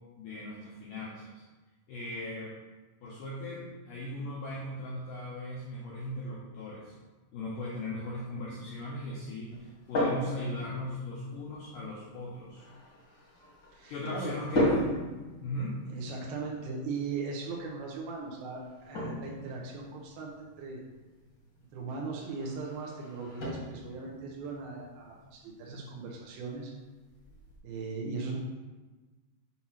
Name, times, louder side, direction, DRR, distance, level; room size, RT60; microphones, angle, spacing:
voice 1, 0.2-1.4 1.9-2.5 3.0-6.9 7.3-12.7 13.9-14.9 15.4-15.8 28.2-28.3, left 1 dB, 80° left, -5 dB, 2.0 m, -38 dB
sound 1, 9.5-27.6, equal, 50° left, 1.4 m, -38 dB
voice 2, 13.7-14.3 15.9-20.8 21.7-26.7 27.6-28.4, right 4 dB, 75° right, -2 dB, 2.4 m, -38 dB
7.2 x 2.9 x 5.6 m, 1.2 s
omnidirectional pair, 4.9 m